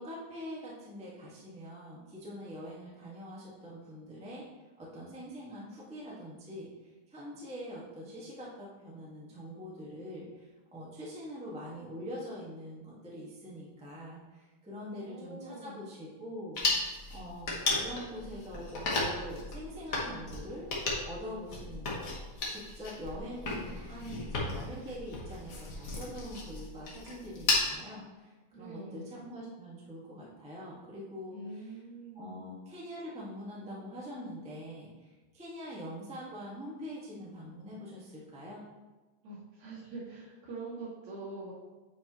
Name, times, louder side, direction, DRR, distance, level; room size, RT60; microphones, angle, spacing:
voice 1, 0.0-4.5 4.8-16.6 17.1-22.1 22.5-31.7 32.1-38.6, equal, 5° right, -6 dB, 0.4 m, -44 dB
voice 2, 14.7-15.9 28.5-29.1 31.3-32.5 39.2-41.5, right 2 dB, 75° right, -7 dB, 3.3 m, -44 dB
sound 1, 16.6-27.7, left 3 dB, 70° left, 0.8 m, -34 dB
9.3 x 4.4 x 3.0 m, 1.2 s
omnidirectional pair, 3.3 m